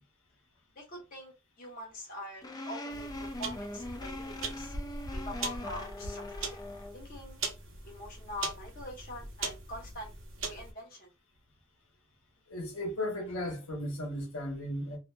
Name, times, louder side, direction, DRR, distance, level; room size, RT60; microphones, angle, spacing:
voice 1, 0.8-1.3 1.6-4.7 5.1-6.6 6.9-7.4 7.9-10.1 10.5-11.1, left 1 dB, 40° left, 0.8 m, -44 dB
sound 1, 2.4-7.0, left 1 dB, 20° left, 0.3 m, -41 dB
sound 2, 2.9-10.7, right 3 dB, 60° right, 0.8 m, -40 dB
voice 2, 12.5-15.0, left 1 dB, 85° left, 0.9 m, -35 dB
2.6 x 2.5 x 2.2 m
head